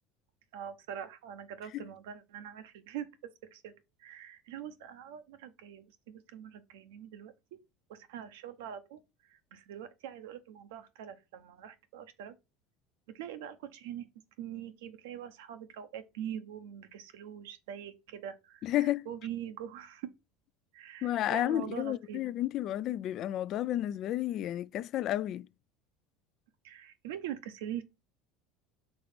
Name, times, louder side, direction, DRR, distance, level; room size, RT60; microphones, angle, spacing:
voice 1, 0.5-3.1 3.5-7.6 7.9-12.3 13.1-14.1 14.4-20.1 20.7-22.2 26.6-27.8, right 10 dB, 85° right, 0.9 m, -43 dB
voice 2, 18.6-19.1 21.0-25.5, left 13 dB, 50° left, 0.3 m, -31 dB
4.6 x 3.8 x 5.2 m
supercardioid pair, 125°, 0 cm